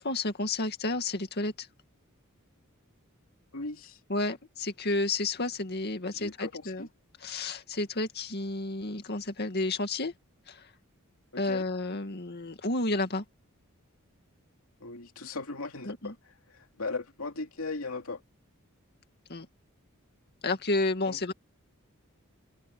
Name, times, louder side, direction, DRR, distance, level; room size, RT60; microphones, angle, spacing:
voice 1, 0.0-1.7 4.1-6.9 7.2-10.1 10.5-10.7 11.4-13.2 15.9-16.1 19.3-19.5 20.4-21.3, left 2 dB, 50° left, 2.2 m, -31 dB
voice 2, 3.5-4.0 6.1-6.9 11.3-11.7 14.8-18.2 21.0-21.3, left 3 dB, 80° left, 2.6 m, -38 dB
head